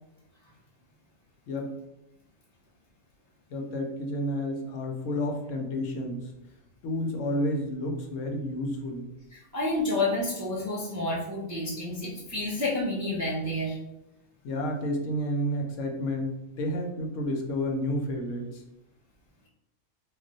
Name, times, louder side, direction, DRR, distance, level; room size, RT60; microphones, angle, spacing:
voice 1, 3.5-6.3 6.8-9.1 14.4-18.6, left 1 dB, 80° left, 2 dB, 0.9 m, -30 dB
voice 2, 9.3-13.8, left 2 dB, 25° right, -7 dB, 0.3 m, -29 dB
2.3 x 2.2 x 3.8 m, 0.90 s
omnidirectional pair, 1.3 m